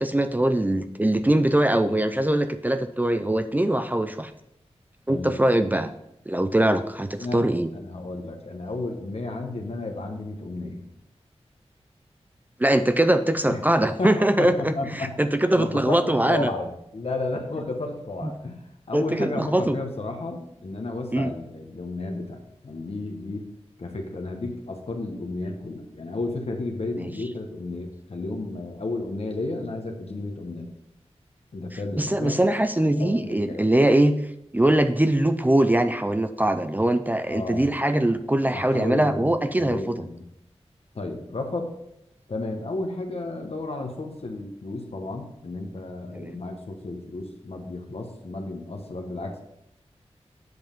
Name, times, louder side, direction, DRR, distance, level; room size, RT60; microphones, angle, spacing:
voice 1, 0.0-4.3 5.1-5.9 6.3-7.7 12.6-14.7 15.2-16.5 18.2-18.3 18.9-19.8 21.1-21.3 27.0-27.1 32.0-34.1 34.5-40.1 46.1-46.4, right 1 dB, 15° right, 10 dB, 0.4 m, -22 dB
voice 2, 5.1-5.4 7.2-7.5 7.7-10.8 13.5-13.6 14.0-15.2 15.5-23.5 23.8-30.7 31.5-32.4 32.9-33.7 37.3-37.7 38.4-40.2 40.9-41.7 42.3-49.4, left 2 dB, 65° left, 3 dB, 1.1 m, -33 dB
7.9 x 5.3 x 5.2 m, 0.80 s
wide cardioid pair, 75°, 11 cm